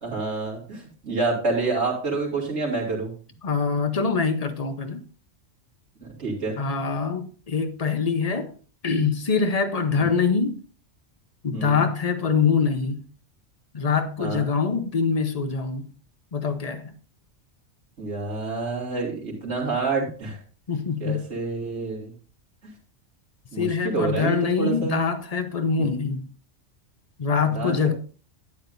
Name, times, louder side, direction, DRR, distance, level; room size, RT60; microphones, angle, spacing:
voice 1, 0.0-3.1 6.0-6.6 10.0-10.1 11.5-11.8 14.2-14.5 18.0-20.4 21.0-22.1 22.6-22.7 23.5-25.0 27.5-27.7, right 3 dB, 75° right, 3.3 m, -28 dB
voice 2, 3.4-5.0 6.6-8.5 8.8-10.6 11.4-13.0 13.7-15.9 16.3-16.9 20.7-21.3 23.6-26.3 27.2-27.9, left 5 dB, 35° left, 0.8 m, -24 dB
12.0 x 8.8 x 2.6 m
omnidirectional pair, 1.2 m